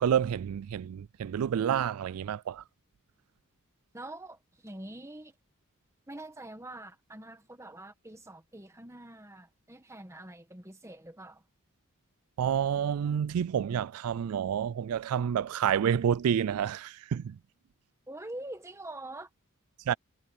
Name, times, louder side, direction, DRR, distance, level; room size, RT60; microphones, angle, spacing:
voice 1, 0.0-2.6 12.4-17.4 19.9-20.0, right 8 dB, 80° right, 0.3 m, -29 dB
voice 2, 3.9-5.4 6.1-11.4 18.1-19.3, right 1 dB, 15° right, 1.6 m, -45 dB
head